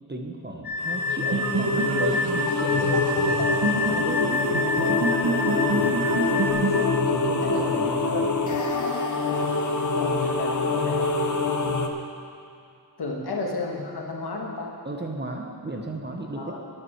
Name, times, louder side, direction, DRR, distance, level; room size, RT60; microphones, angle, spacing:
voice 1, 0.1-3.5 3.8-6.0 7.0-8.6 13.2-13.3 14.8-16.6, right 2 dB, 25° right, 2 dB, 1.0 m, -34 dB
sound 1, 0.6-6.5, left 2 dB, 20° left, 2.1 m, -29 dB
sound 2, 0.8-11.9, left 4 dB, 45° left, 0.9 m, -25 dB
sound 3, 1.3-6.9, right 3 dB, 55° right, 1.2 m, -29 dB
voice 2, 7.4-8.7 9.9-11.1 13.0-14.7 16.4-16.7, left 3 dB, 60° left, -1 dB, 1.7 m, -33 dB
12.0 x 9.8 x 4.6 m, 2.5 s
wide cardioid pair, 95°, 44 cm